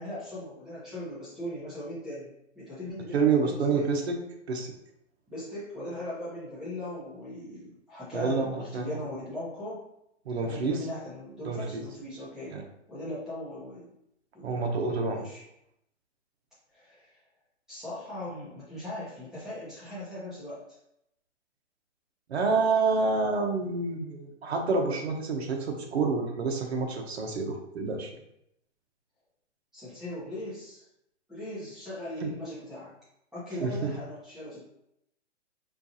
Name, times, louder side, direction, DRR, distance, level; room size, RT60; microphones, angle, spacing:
voice 1, 0.0-2.3 2.5-3.8 5.3-9.8 10.4-12.5 12.9-13.9 14.3-14.6 15.1-15.4 16.7-17.1 17.7-20.6 29.7-30.8 31.3-32.9 33.3-34.6, left 1 dB, ahead, -11 dB, 0.8 m, -39 dB
voice 2, 3.1-4.2 4.5-4.7 8.1-8.9 10.2-10.9 11.4-11.8 12.5-12.6 14.4-15.2 22.3-28.1 32.2-32.3 33.6-33.9, right 4 dB, 60° right, 3 dB, 0.8 m, -28 dB
4.4 x 2.4 x 2.7 m, 0.79 s
hypercardioid pair, 155°, 37 cm